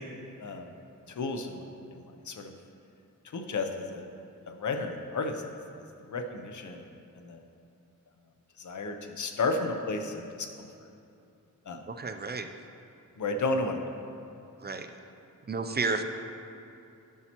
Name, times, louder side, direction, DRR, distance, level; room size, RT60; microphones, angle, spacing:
voice 1, 0.4-0.8 1.1-2.5 3.3-4.1 4.5-5.4 6.0-6.9 7.1-7.5 8.6-10.9 11.7-11.8 13.2-13.8, left 3 dB, 60° left, 5 dB, 0.7 m, -33 dB
voice 2, 11.9-12.5 14.6-14.9 15.5-16.0, right 3 dB, 30° right, 7 dB, 0.4 m, -31 dB
12.0 x 5.5 x 3.0 m, 2.6 s
wide cardioid pair, 85°, 34 cm